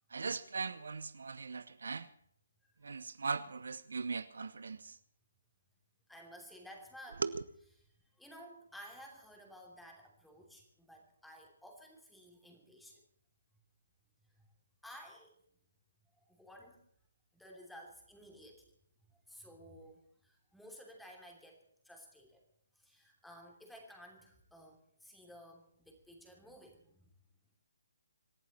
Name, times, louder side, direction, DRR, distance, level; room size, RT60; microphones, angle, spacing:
voice 1, 0.1-2.1 2.8-5.0 7.2-7.4, right 4 dB, 65° right, 0.8 m, -39 dB
voice 2, 6.1-7.2 8.2-13.0 14.4-14.5 14.8-15.4 16.2-16.8 17.3-18.7 19.1-22.4 22.7-27.1, equal, ahead, 3.0 m, -55 dB
26.5 x 11.5 x 4.3 m
figure-of-eight pair, 145°, 0 cm